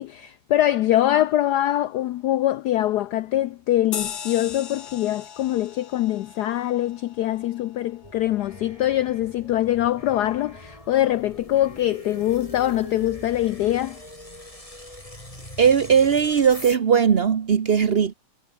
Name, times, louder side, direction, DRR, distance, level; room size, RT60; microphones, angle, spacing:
voice 1, 0.0-14.0, left 13 dB, 85° left, 0.9 m, -23 dB
sound 1, 3.9-8.8, left 8 dB, 50° left, 1.8 m, -38 dB
sound 2, 8.0-16.8, left 1 dB, 15° left, 5.4 m, -42 dB
voice 2, 15.6-18.1, right 7 dB, 45° right, 0.8 m, -18 dB
omnidirectional pair, 2.3 m